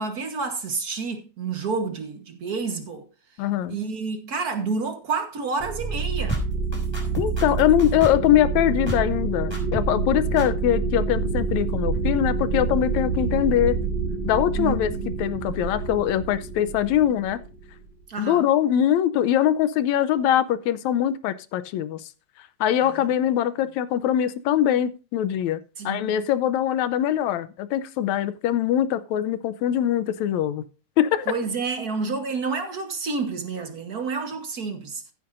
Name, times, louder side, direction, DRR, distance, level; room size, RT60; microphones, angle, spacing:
voice 1, 0.0-3.0 3.7-6.4 14.6-15.1 18.1-18.4 22.8-23.1 25.8-26.1 31.3-35.0, right 4 dB, 50° right, 1.1 m, -29 dB
voice 2, 3.4-3.8 7.2-13.8 14.2-14.9 15.2-17.4 18.2-22.1 22.6-25.6 25.9-30.6 31.0-31.3, left 11 dB, 80° left, 2.0 m, -22 dB
sound 1, 5.6-17.9, right 4 dB, 65° right, 1.9 m, -27 dB
sound 2, 6.3-8.4 8.9-9.2 9.5-10.1 10.4-10.5, left 1 dB, 10° left, 3.6 m, -32 dB
15.0 x 8.6 x 2.6 m
omnidirectional pair, 3.3 m